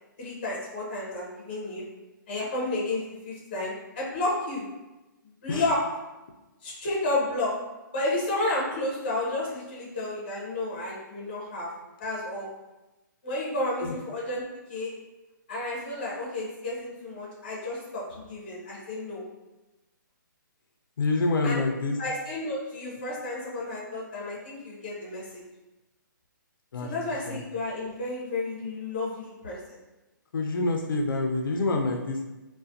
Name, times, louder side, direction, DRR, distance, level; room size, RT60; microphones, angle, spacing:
voice 1, 0.2-1.8 2.3-4.6 5.2-5.8 6.6-7.5 7.9-11.7 12.0-12.5 13.2-14.4 14.7-14.9 15.5-19.2 21.4-21.6 22.0-25.4 26.8-29.8, left 2 dB, 30° left, -5 dB, 0.6 m, -31 dB
voice 2, 21.0-22.0 26.7-26.9 27.3-27.4 30.3-32.3, left 3 dB, 80° left, 2 dB, 0.4 m, -27 dB
2.3 x 2.1 x 2.5 m, 1.1 s
hypercardioid pair, 175°, 11 cm